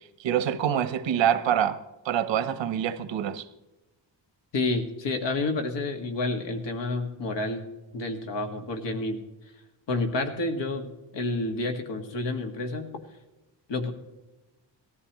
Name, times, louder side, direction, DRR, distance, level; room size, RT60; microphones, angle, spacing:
voice 1, 0.2-3.5, right 9 dB, 85° right, 1.0 m, -25 dB
voice 2, 4.5-7.6 7.9-9.2 9.9-12.9 13.7-13.9, left 2 dB, 75° left, 1.9 m, -29 dB
18.5 x 14.0 x 3.1 m
wide cardioid pair, 165°, 44 cm